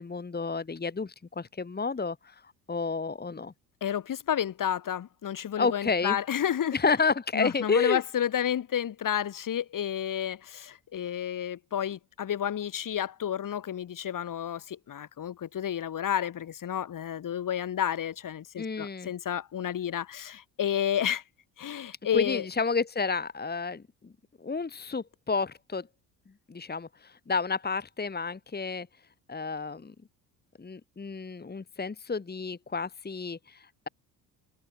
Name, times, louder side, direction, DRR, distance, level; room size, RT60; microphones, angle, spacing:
voice 1, 0.0-3.5 5.6-6.2 6.7-8.0 18.6-19.1 22.1-24.1 24.4-25.9 26.5-28.9 29.3-29.9 30.6-33.9, left 4 dB, 20° left, 2.2 m, -30 dB
voice 2, 3.8-6.8 7.3-21.2 21.6-22.4, left 9 dB, 40° left, 2.3 m, -31 dB
figure-of-eight pair, 55°, 48 cm